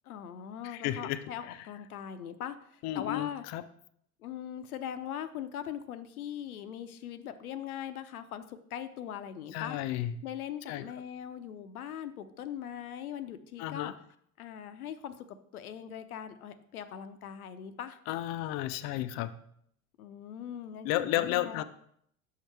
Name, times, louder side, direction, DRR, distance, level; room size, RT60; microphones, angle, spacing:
voice 1, 0.0-3.4 4.2-9.8 10.2-13.9 14.4-15.3 15.5-18.0 20.0-21.6, left 9 dB, 80° left, 10 dB, 0.7 m, -40 dB
voice 2, 0.8-1.2 2.8-3.3 3.5-3.6 9.5-10.1 10.7-10.8 13.6-13.9 18.1-19.3 20.8-21.6, left 14 dB, 40° left, 10 dB, 0.4 m, -32 dB
6.5 x 5.5 x 3.3 m, 0.67 s
hypercardioid pair, 75°, 43 cm